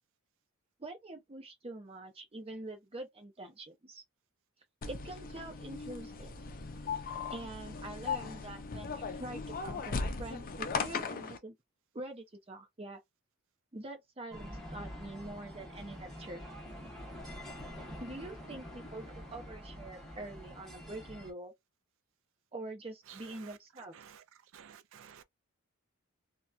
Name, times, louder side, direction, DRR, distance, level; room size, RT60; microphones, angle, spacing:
voice 1, 0.8-4.0 4.9-6.3 7.3-11.6 11.9-13.0 13.7-16.4 18.0-21.5 22.5-23.9, right 2 dB, 25° right, 0.7 m, -45 dB
sound 1, 4.8-11.4, left 4 dB, 40° left, 0.5 m, -38 dB
sound 2, 14.3-21.3, equal, ahead, 1.0 m, -46 dB
voice 2, 24.5-25.2, right 8 dB, 60° right, 0.4 m, -54 dB
2.8 x 2.2 x 2.4 m
head